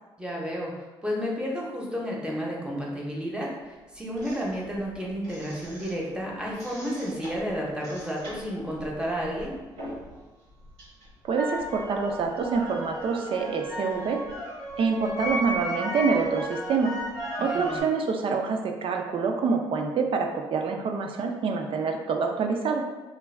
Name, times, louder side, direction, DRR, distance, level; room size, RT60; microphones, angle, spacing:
voice 1, 0.2-0.7 1.0-3.5 3.9-9.5 17.3-17.8, equal, 10° right, -3 dB, 0.8 m, -31 dB
sound 1, 4.2-6.2 6.5-10.2 10.5-17.8, equal, 90° right, 0.9 m, -36 dB
voice 2, 11.2-14.2 14.8-16.9 17.4-22.8, right 5 dB, 55° right, 3 dB, 0.4 m, -26 dB
2.2 x 2.2 x 3.2 m, 1.2 s
supercardioid pair, 60°, 11 cm